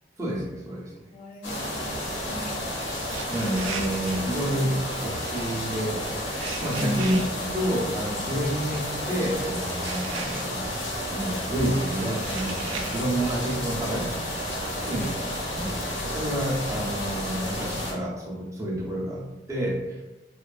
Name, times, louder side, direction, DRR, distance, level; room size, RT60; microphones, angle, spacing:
voice 1, 0.2-0.9 3.3-7.2 7.5-10.7 11.1-14.2 14.8-20.0, right 1 dB, 15° right, -5 dB, 0.5 m, -29 dB
voice 2, 1.1-2.8 6.8-7.5 8.7-8.8 12.9-13.1 14.9-15.2 16.6-16.8, equal, 50° left, 1 dB, 0.3 m, -38 dB
sound 1, 1.4-17.9, left 1 dB, 65° left, 0.7 m, -31 dB
sound 2, 1.7-17.5, right 4 dB, 85° right, 0.3 m, -41 dB
2.4 x 2.2 x 2.4 m, 1.1 s
head